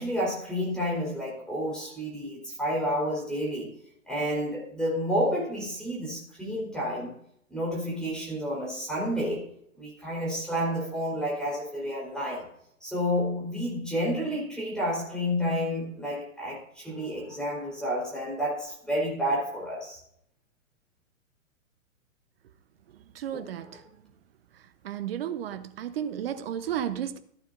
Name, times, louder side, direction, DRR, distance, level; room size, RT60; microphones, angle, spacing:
voice 1, 0.0-3.8 4.1-7.1 7.5-9.5 9.8-12.5 12.8-20.0 23.3-23.8, equal, ahead, 4.1 m, -30 dB
voice 2, 23.1-23.8 24.8-27.2, right 10 dB, 45° right, 0.9 m, -33 dB
14.0 x 9.1 x 2.6 m
figure-of-eight pair, 115°, 41 cm